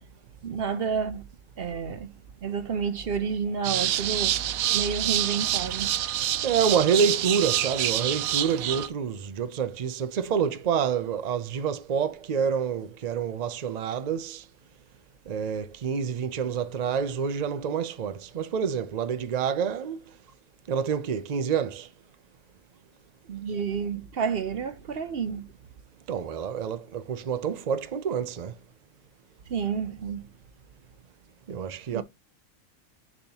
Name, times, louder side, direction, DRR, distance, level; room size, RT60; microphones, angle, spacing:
voice 1, 0.4-1.2 1.6-2.1 2.4-6.0 23.3-25.5 29.5-30.3 31.9-32.0, right 6 dB, 55° right, 0.8 m, -30 dB
sound 1, 3.6-8.9, right 12 dB, 85° right, 1.0 m, -27 dB
voice 2, 6.4-14.4 15.3-20.0 20.7-21.9 26.1-28.5 31.5-32.0, right 7 dB, 70° right, 0.4 m, -27 dB
10.5 x 3.6 x 2.8 m
omnidirectional pair, 1.4 m